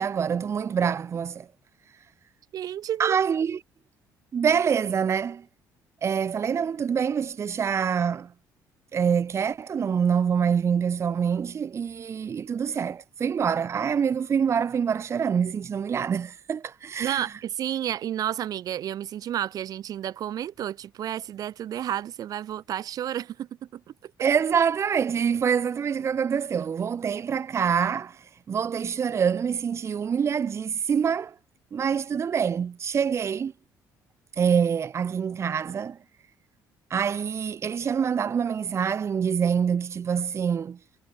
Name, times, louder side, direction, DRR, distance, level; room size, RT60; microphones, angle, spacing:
voice 1, 0.0-1.5 3.0-3.6 4.3-5.4 6.0-8.3 8.9-17.3 24.2-31.4 31.7-33.5 34.3-36.0 36.9-40.8, right 7 dB, 40° right, 1.7 m, -25 dB
voice 2, 2.5-3.2 17.0-24.1, right 11 dB, 60° right, 3.6 m, -31 dB
cardioid pair, 105°, 7 cm